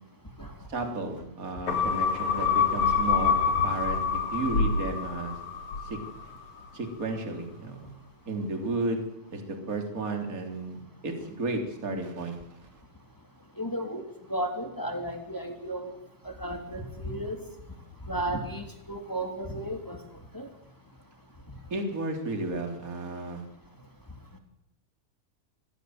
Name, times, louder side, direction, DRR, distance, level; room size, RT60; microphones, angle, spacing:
voice 1, 0.7-3.4 3.6-5.4 5.8-6.0 6.7-7.9 8.3-9.0 9.3-12.4 21.7-23.4, right 2 dB, 25° right, 4 dB, 3.6 m, -33 dB
sound 1, 1.7-6.3 6.7-6.8, left 6 dB, 65° left, 5.2 m, -26 dB
voice 2, 13.6-14.0 14.3-15.9 16.2-17.4 18.1-20.0 20.3-20.5, right 1 dB, 5° left, 4 dB, 2.7 m, -33 dB
24.5 x 16.5 x 7.9 m, 0.86 s
omnidirectional pair, 3.6 m